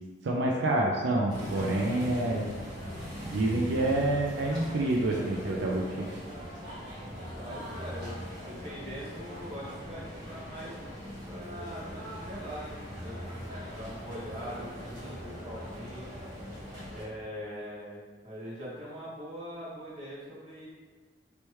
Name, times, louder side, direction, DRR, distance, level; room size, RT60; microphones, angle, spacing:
voice 1, 0.2-2.5 3.2-6.1, right 2 dB, 85° right, -1 dB, 0.4 m, -27 dB
sound 1, 1.3-17.0, equal, 65° right, 1.4 m, -41 dB
voice 2, 7.1-10.7 11.3-16.2 16.9-20.7, equal, 40° right, -9 dB, 1.4 m, -42 dB
3.3 x 3.1 x 3.0 m, 1.4 s
head